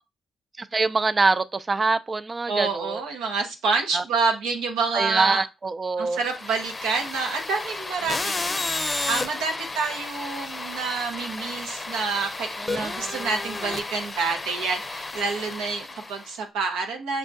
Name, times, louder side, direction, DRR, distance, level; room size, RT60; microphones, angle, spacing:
voice 1, 0.6-3.0 3.9-4.0 4.9-6.2 8.0-8.2 12.6-13.2, right 3 dB, 35° right, 0.3 m, -25 dB
voice 2, 2.5-5.4 6.0-17.2, right 4 dB, 90° right, 0.9 m, -28 dB
sound 1, 6.1-16.3, left 3 dB, 30° left, 0.6 m, -32 dB
6.2 x 2.2 x 2.6 m
supercardioid pair, 60°, 0 cm